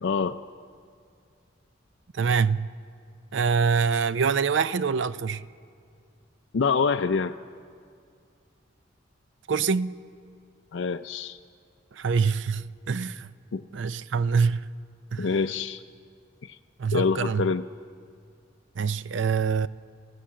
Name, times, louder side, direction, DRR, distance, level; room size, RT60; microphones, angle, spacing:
voice 1, 0.0-0.4 6.5-7.3 10.7-11.4 13.5-13.6 15.2-15.8 16.4-16.6 16.9-17.6, left 5 dB, 70° left, 0.5 m, -26 dB
voice 2, 2.1-2.7 3.3-5.5 9.5-10.0 11.9-13.3 13.7-14.7 15.1-15.3 16.8-17.5 18.8-19.7, right 5 dB, 70° right, 0.5 m, -25 dB
30.0 x 16.0 x 7.5 m
head